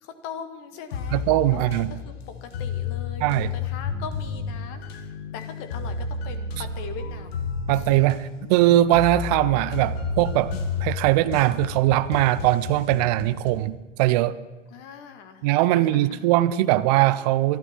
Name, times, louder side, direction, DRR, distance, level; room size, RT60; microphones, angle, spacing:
voice 1, 0.0-1.2 1.5-7.4 7.7-7.9 14.7-15.5 15.7-16.3, left 7 dB, 35° left, 9 dB, 1.7 m, -40 dB
sound 1, 0.9-13.7, left 5 dB, 55° left, 1.9 m, -32 dB
voice 2, 1.1-1.9 3.2-3.5 7.7-10.5 10.8-14.3 15.4-17.6, right 15 dB, 35° right, 14 dB, 0.5 m, -21 dB
22.5 x 13.0 x 4.3 m, 1.2 s
hypercardioid pair, 115°, 37 cm